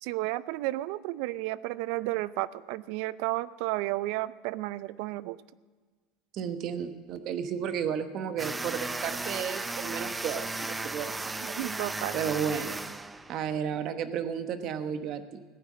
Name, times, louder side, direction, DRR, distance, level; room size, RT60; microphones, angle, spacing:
voice 1, 0.0-5.4 11.6-12.2, right 18 dB, 70° right, 18 dB, 0.4 m, -32 dB
voice 2, 6.3-11.6 12.1-12.8 13.3-15.4, right 8 dB, 50° right, 9 dB, 1.1 m, -33 dB
sound 1, 8.4-13.6, right 2 dB, 10° right, 0.5 m, -35 dB
16.0 x 9.4 x 7.4 m, 1.4 s
supercardioid pair, 130°, 0 cm